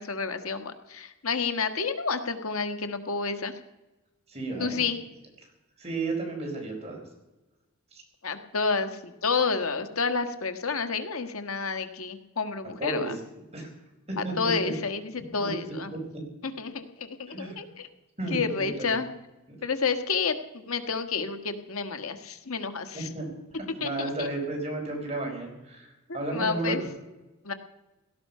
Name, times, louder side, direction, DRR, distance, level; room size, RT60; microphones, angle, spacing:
voice 1, 0.0-3.5 4.6-5.0 8.2-13.2 14.2-15.9 16.4-17.9 18.3-19.1 19.6-23.1 23.8-24.3 26.3-26.8 27.4-27.5, left 5 dB, 80° left, 9 dB, 1.7 m, -30 dB
voice 2, 4.3-4.8 5.8-7.0 7.9-8.0 12.8-13.1 13.5-13.7 14.1-14.7 15.4-15.5 17.3-17.6 18.2-18.9 22.9-23.2 23.8-26.7, right 2 dB, 30° right, 1 dB, 5.3 m, -33 dB
17.0 x 14.0 x 5.7 m, 1.0 s
head